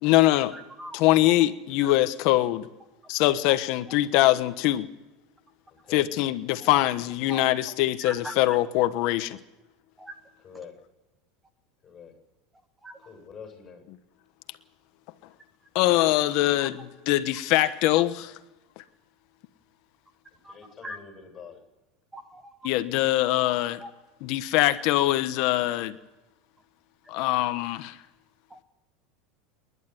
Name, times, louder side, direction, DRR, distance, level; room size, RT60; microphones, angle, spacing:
voice 1, 0.0-0.5 0.9-2.7 3.1-4.9 5.9-9.4 15.7-18.3 22.6-23.8 24.2-26.0 27.1-28.0, left 16 dB, 55° left, 11 dB, 1.2 m, -23 dB
voice 2, 0.5-1.0 7.3-7.4 8.0-8.3 10.0-10.1 12.8-13.0 20.5-20.6 20.8-21.0 22.1-22.6 23.8-23.9 28.5-28.6, equal, 10° right, 9 dB, 1.0 m, -39 dB
voice 3, 10.4-10.8 11.8-12.1 13.0-13.8 20.4-21.6, left 6 dB, 20° left, 5 dB, 7.6 m, -45 dB
28.5 x 11.5 x 9.8 m, 1.1 s
supercardioid pair, 150°, 0 cm